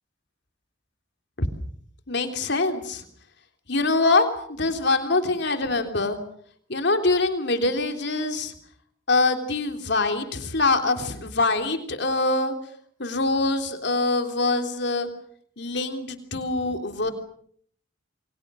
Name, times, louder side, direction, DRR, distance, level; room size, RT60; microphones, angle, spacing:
voice 1, 2.1-3.0 3.7-6.2 6.7-8.5 9.1-12.5 13.0-15.1 15.6-17.1, left 3 dB, 60° left, 6 dB, 3.4 m, -24 dB
28.5 x 24.0 x 6.4 m, 0.62 s
head